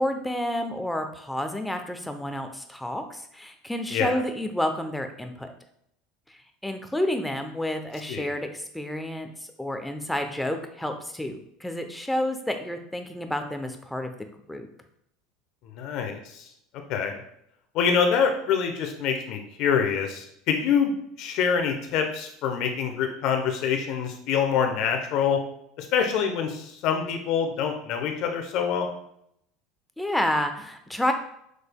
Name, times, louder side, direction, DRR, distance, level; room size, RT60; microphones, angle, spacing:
voice 1, 0.0-5.5 6.6-9.3 9.6-14.1 14.5-14.7 30.0-31.1, left 1 dB, 5° left, 6 dB, 0.7 m, -29 dB
voice 2, 15.7-16.4 16.9-17.2 17.7-20.9 21.2-25.4 25.8-28.9, left 7 dB, 60° left, 4 dB, 0.8 m, -25 dB
6.3 x 3.3 x 2.2 m, 0.75 s
hypercardioid pair, 95°, 0 cm